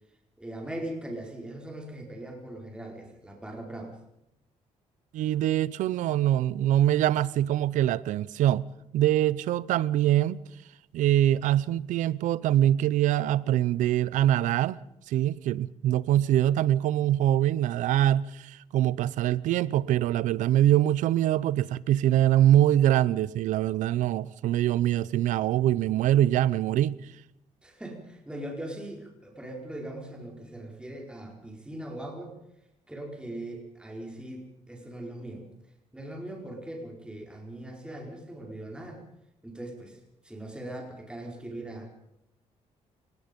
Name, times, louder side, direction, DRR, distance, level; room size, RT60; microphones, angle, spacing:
voice 1, 0.4-4.0 27.6-32.3 32.9-35.5 35.9-39.0 39.4-40.0 40.2-41.9, right 1 dB, 5° right, 4.7 m, -40 dB
voice 2, 5.1-8.6 8.9-10.4 10.9-14.8 15.1-27.0, right 12 dB, 85° right, 0.7 m, -24 dB
29.0 x 19.0 x 5.3 m
cardioid pair, 105°, 13 cm